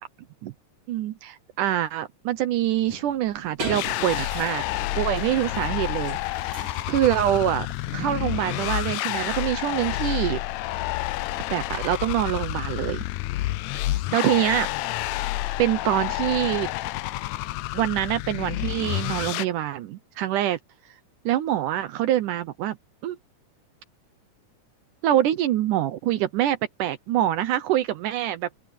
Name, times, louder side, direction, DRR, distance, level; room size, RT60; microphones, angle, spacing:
voice 1, 0.9-4.6 5.0-7.7 7.9-10.4 11.5-13.0 14.1-14.7 15.6-16.7 17.7-20.6 21.3-22.8 23.0-23.2 25.0-28.5, right 12 dB, 75° right, 2.3 m, -25 dB
sound 1, 1.9-3.8 4.5-5.6 6.0-8.5 9.2-9.3 10.1-11.8 13.1-14.5 14.9-16.5 16.7-17.9 18.2-18.4, left 3 dB, 65° left, 8.6 m, -54 dB
sound 2, 3.1-11.2, right 2 dB, 45° right, 5.8 m, -42 dB
sound 3, 3.6-19.4, left 17 dB, 90° left, 1.6 m, -29 dB
open air
omnidirectional pair, 3.8 m